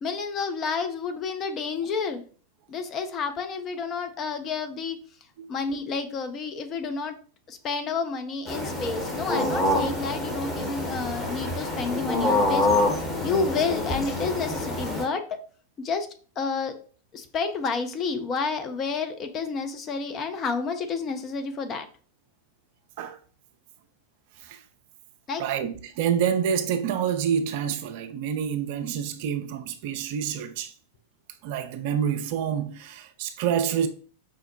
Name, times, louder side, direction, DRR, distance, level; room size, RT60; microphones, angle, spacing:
voice 1, 0.0-2.2 2.7-5.0 5.5-7.1 7.5-12.7 13.0-15.3 15.8-16.1 16.4-16.7 17.1-21.9 25.3-25.4, left 4 dB, 30° left, 0.5 m, -30 dB
sound 1, 8.5-15.0, left 2 dB, 15° left, 0.9 m, -26 dB
voice 2, 25.4-30.7 31.4-33.9, right 8 dB, 50° right, 0.3 m, -27 dB
4.9 x 2.1 x 2.7 m
figure-of-eight pair, 90°, 0 cm